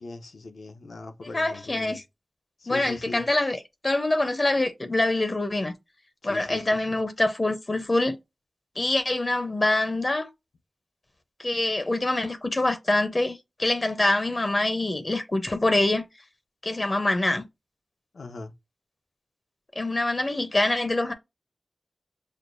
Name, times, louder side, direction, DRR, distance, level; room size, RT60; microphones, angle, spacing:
voice 1, 0.0-2.0 2.6-3.2 6.2-7.0 18.1-18.5, left 3 dB, 80° left, 0.7 m, -40 dB
voice 2, 1.3-2.0 2.7-5.7 6.2-8.2 8.8-10.3 11.4-16.1 16.6-17.5 19.8-21.1, left 2 dB, 35° left, 0.7 m, -25 dB
6.4 x 2.2 x 2.5 m
cardioid pair, 55°, 0 cm